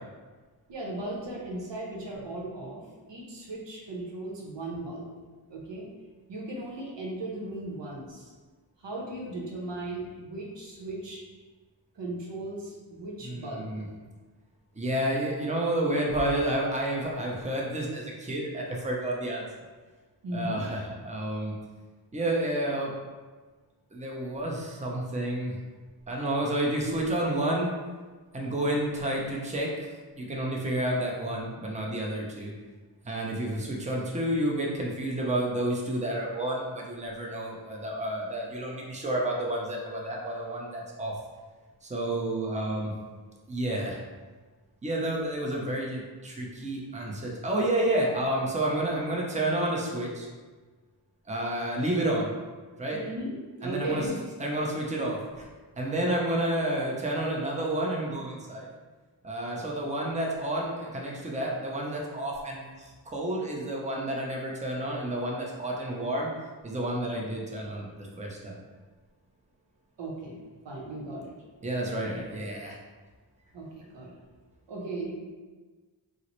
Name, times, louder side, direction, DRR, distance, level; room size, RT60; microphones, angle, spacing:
voice 1, 0.7-2.8 3.1-5.1 5.5-5.9 6.3-8.3 8.8-11.2 11.9-13.8 20.2-20.6 52.9-54.2 70.0-71.3 73.5-74.1 74.7-75.1, right 1 dB, 80° right, -3 dB, 0.8 m, -37 dB
voice 2, 13.2-13.9 14.8-19.5 20.3-21.5 22.1-22.9 23.9-25.6 26.1-27.7 28.3-32.5 33.0-41.2 41.8-42.9 43.5-44.0 44.8-50.3 51.3-52.3 52.8-53.0 53.6-54.1 54.4-55.4 55.8-58.7 59.2-66.3 66.6-68.6 71.6-72.8, right 1 dB, 15° right, -2 dB, 0.6 m, -30 dB
3.8 x 2.0 x 3.0 m, 1.4 s
cardioid pair, 45°, 43 cm